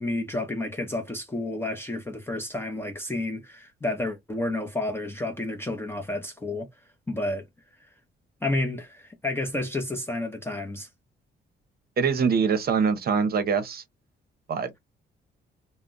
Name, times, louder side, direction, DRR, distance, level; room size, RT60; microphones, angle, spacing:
voice 1, 0.0-6.7 7.1-7.5 8.4-10.9, left 2 dB, 10° left, 0.6 m, -30 dB
voice 2, 12.0-13.8 14.5-14.7, right 5 dB, 50° right, 0.7 m, -24 dB
2.2 x 2.0 x 3.8 m
cardioid pair, 90°, 20 cm